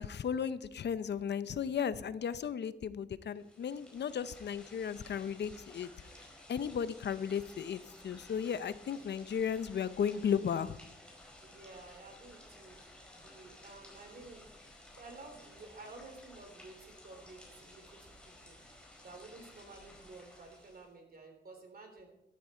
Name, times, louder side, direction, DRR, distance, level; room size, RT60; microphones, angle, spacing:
voice 1, 0.0-5.9 6.5-10.8, left 7 dB, 75° left, 15 dB, 0.6 m, -35 dB
sound 1, 3.3-20.9, left 1 dB, 5° left, 4.7 m, -56 dB
voice 2, 11.4-12.8 13.1-14.4 15.0-18.1 18.4-18.5 19.0-22.1, right 3 dB, 60° right, 4 dB, 3.6 m, -52 dB
13.0 x 13.0 x 4.4 m, 0.88 s
wide cardioid pair, 95°, 18 cm